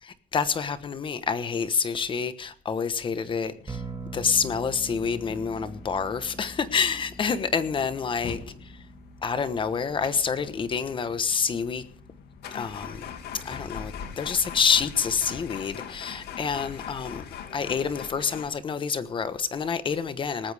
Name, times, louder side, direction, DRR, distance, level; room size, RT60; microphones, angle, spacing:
voice 1, 0.0-3.8 4.1-8.7 9.2-11.8 12.5-13.1 13.4-17.2 17.5-20.5, left 6 dB, 30° left, 1.2 m, -28 dB
sound 1, 3.5-18.5, left 7 dB, 90° left, 2.4 m, -42 dB
sound 2, 3.7-17.1, right 2 dB, 20° right, 2.0 m, -45 dB
18.5 x 15.0 x 3.5 m
cardioid pair, 165°, 16 cm